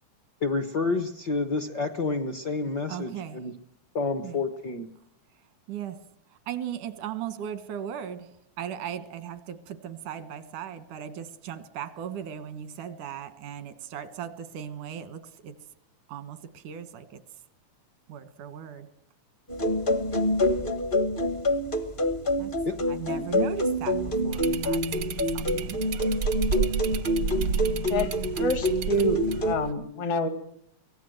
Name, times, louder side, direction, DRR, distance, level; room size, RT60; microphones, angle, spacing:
voice 1, 0.4-3.5 3.9-4.9 22.6-22.8, left 3 dB, 55° left, 10 dB, 1.2 m, -29 dB
voice 2, 2.9-3.4 4.2-4.4 5.7-6.0 6.5-15.6 16.1-17.2 18.1-18.9 22.4-22.5 22.9-24.9 25.3-25.8, right 9 dB, 90° right, 13 dB, 3.0 m, -37 dB
sound 1, 19.5-29.5, left 1 dB, 35° left, 0.8 m, -27 dB
sound 2, 24.3-29.7, right 7 dB, 70° right, 1.0 m, -31 dB
voice 3, 28.4-30.3, left 1 dB, 70° left, 11 dB, 3.6 m, -27 dB
24.0 x 18.0 x 7.8 m, 0.72 s
omnidirectional pair, 3.4 m